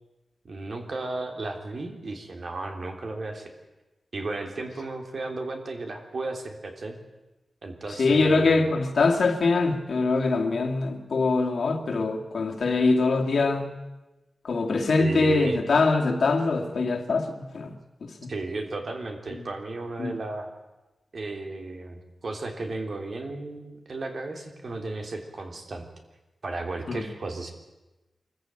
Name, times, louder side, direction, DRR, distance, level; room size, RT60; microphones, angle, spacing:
voice 1, 0.4-3.5 4.1-7.0 7.6-8.7 15.0-15.6 18.3-20.5 21.1-25.8 26.4-27.5, right 2 dB, 55° right, 4 dB, 3.3 m, -34 dB
voice 2, 8.0-13.7 14.4-17.7 18.0-18.1 20.0-20.1 26.9-27.0, left 3 dB, 70° left, 2 dB, 2.5 m, -23 dB
24.0 x 14.5 x 9.0 m, 1.1 s
wide cardioid pair, 105°, 0 cm